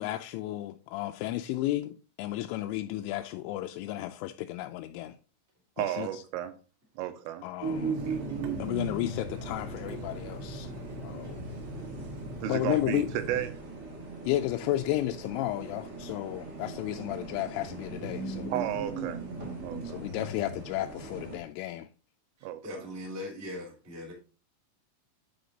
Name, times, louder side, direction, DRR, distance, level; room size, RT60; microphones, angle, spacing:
voice 1, 0.0-5.2 5.8-6.2 7.4-8.0 8.6-10.7 11.0-11.4 12.4-13.1 14.3-18.5 19.8-21.9, left 15 dB, 85° left, 2.8 m, -33 dB
voice 2, 5.8-6.5 7.0-7.4 12.4-13.5 18.5-19.2 19.6-20.0 22.4-22.8, right 12 dB, 85° right, 3.3 m, -33 dB
sound 1, 7.6-21.4, right 3 dB, 40° right, 1.4 m, -39 dB
Water tap faucet / Sink (filling or washing), 7.9-13.5, equal, 65° right, 2.6 m, -42 dB
voice 3, 22.4-24.1, left 1 dB, 10° right, 0.9 m, -40 dB
10.5 x 5.0 x 3.9 m
omnidirectional pair, 6.0 m